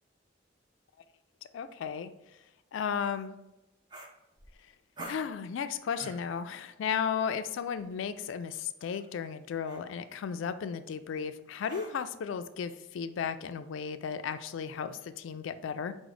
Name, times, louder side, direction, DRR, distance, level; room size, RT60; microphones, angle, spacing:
voice 1, 1.5-2.1 2.7-3.4 5.1-15.9, left 7 dB, 75° left, 12 dB, 0.3 m, -34 dB
sound 1, 3.0-3.2 3.9-4.6 5.0-5.3 5.9-6.3 7.8-7.9 8.8-9.1 9.6-9.9 11.7-12.1, right 1 dB, 25° right, 0.5 m, -47 dB
4.9 x 2.1 x 4.8 m, 0.93 s
head